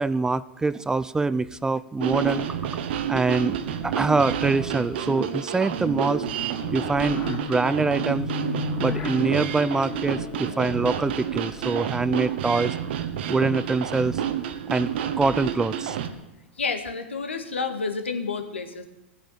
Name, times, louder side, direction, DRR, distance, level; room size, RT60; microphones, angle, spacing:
voice 1, 0.0-2.5 3.1-3.6 3.8-6.3 6.7-8.3 8.8-12.7 13.3-14.2 14.7-14.9 15.2-16.0, right 3 dB, 10° right, 17 dB, 0.4 m, -24 dB
sound 1, 2.0-16.1, right 9 dB, 60° right, 1.5 m, -29 dB
sound 2, 3.5-12.6, left 6 dB, 40° left, 4.3 m, -37 dB
voice 2, 16.6-18.9, left 4 dB, 80° left, 6 dB, 2.0 m, -29 dB
15.0 x 8.9 x 9.1 m, 0.90 s
figure-of-eight pair, 100°, 6 cm